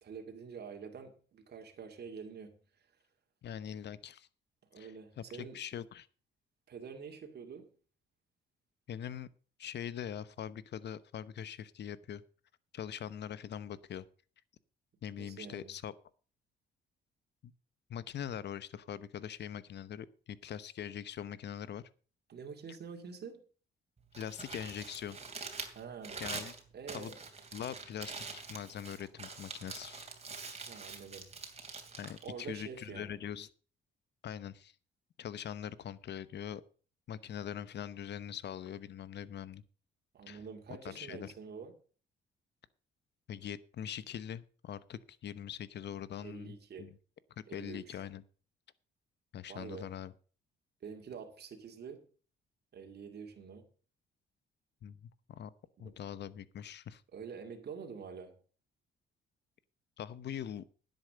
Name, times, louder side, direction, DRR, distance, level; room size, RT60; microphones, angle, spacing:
voice 1, 0.0-2.9 4.7-5.6 6.7-7.7 15.2-15.7 22.3-23.4 25.7-26.2 26.7-27.2 30.7-31.3 32.2-33.2 40.1-41.7 46.2-46.9 47.5-48.1 49.5-49.9 50.8-52.1 52.7-53.7 55.8-55.9 57.1-58.3, right 6 dB, 55° right, 3 dB, 2.4 m, -47 dB
voice 2, 3.4-4.3 4.8-6.1 8.9-9.3 9.6-12.2 12.7-14.1 15.0-15.9 17.4-17.5 17.9-21.9 24.2-25.2 26.2-26.5 26.9-27.1 27.5-30.1 32.0-33.5 34.2-34.7 35.2-36.6 37.1-39.6 40.3-40.4 40.8-41.3 43.3-46.9 47.4-48.2 49.3-50.1 54.8-55.5 55.8-57.0 60.0-60.7, left 9 dB, 60° left, 17 dB, 0.9 m, -42 dB
Crumpling crinkling, 24.0-33.1, right 4 dB, 30° right, 2.8 m, -45 dB
10.5 x 8.1 x 6.3 m, 0.40 s
cardioid pair, 90°, 20 cm